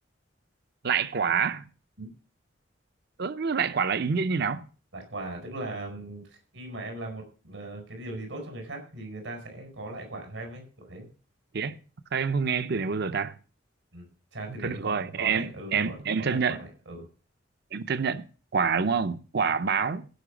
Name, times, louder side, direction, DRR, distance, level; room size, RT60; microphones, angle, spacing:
voice 1, 0.8-1.6 3.2-4.7 11.5-11.8 12.1-13.3 14.6-16.6 17.7-18.2 18.5-20.1, right 5 dB, 60° right, 0.7 m, -27 dB
voice 2, 4.9-6.3 6.5-11.1 13.9-14.1 14.3-17.1, right 2 dB, 90° right, 4.7 m, -39 dB
16.0 x 5.9 x 5.0 m
head